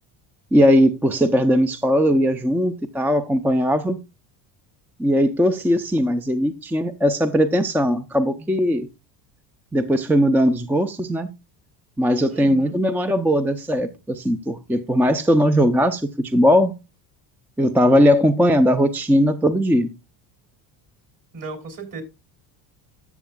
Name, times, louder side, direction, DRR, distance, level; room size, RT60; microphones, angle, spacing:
voice 1, 0.5-4.0 5.0-8.9 9.7-11.3 12.0-16.7 17.6-19.9, equal, 5° right, 0.5 m, -19 dB
voice 2, 12.3-12.8 21.3-22.0, right 3 dB, 40° right, 3.5 m, -35 dB
13.0 x 7.1 x 2.3 m
supercardioid pair, 85°, 49 cm